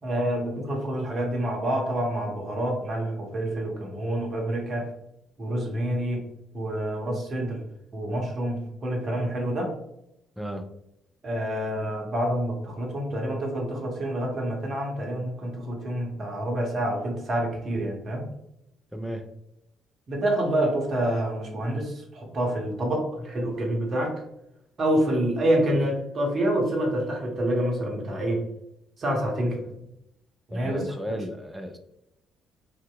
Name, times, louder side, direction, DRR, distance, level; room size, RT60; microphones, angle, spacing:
voice 1, 0.0-4.9 5.4-6.2 6.5-7.6 7.9-9.7 11.2-18.2 20.1-24.1 24.8-28.4 29.0-29.6 30.5-30.8, right 1 dB, 45° right, -1 dB, 0.7 m, -27 dB
voice 2, 10.4-10.7 18.9-19.2 30.5-31.8, equal, 5° right, 5 dB, 0.4 m, -34 dB
2.7 x 2.1 x 2.2 m, 0.83 s
figure-of-eight pair, 45°, 0 cm